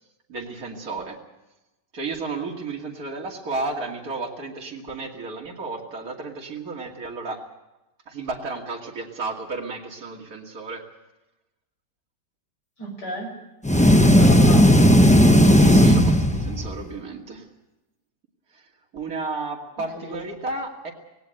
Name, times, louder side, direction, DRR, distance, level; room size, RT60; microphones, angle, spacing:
voice 1, 0.3-1.2 1.9-7.4 8.1-10.8 15.5-17.5 18.5-18.6 18.9-20.9, right 3 dB, 60° right, -1 dB, 2.9 m, -32 dB
voice 2, 12.8-13.3 14.1-15.4 19.9-20.2, left 1 dB, 85° left, 1 dB, 6.3 m, -33 dB
sound 1, 13.6-16.8, equal, 5° left, 0.6 m, -15 dB
19.0 x 17.0 x 9.0 m, 0.98 s
omnidirectional pair, 1.8 m